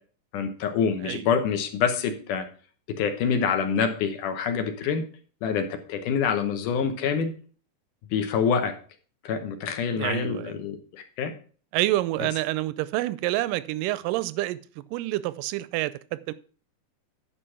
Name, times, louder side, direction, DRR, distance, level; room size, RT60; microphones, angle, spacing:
voice 1, 0.3-2.5 3.0-5.0 5.4-7.3 8.1-8.8 9.2-11.3, left 6 dB, 75° left, 2.3 m, -26 dB
voice 2, 10.0-10.6 11.7-16.3, right 17 dB, 80° right, 2.0 m, -28 dB
9.9 x 5.0 x 5.7 m
omnidirectional pair, 3.9 m